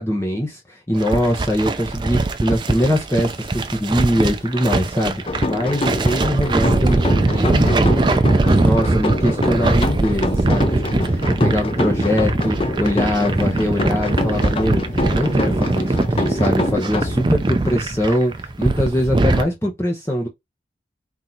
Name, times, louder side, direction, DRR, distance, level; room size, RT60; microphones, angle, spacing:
voice 1, 0.0-20.3, equal, 15° left, 0.8 m, -22 dB
sound 1, 0.9-19.4, right 2 dB, 25° right, 0.4 m, -21 dB
sound 2, 5.3-17.7, left 2 dB, 30° left, 0.5 m, -26 dB
3.9 x 2.7 x 4.4 m
head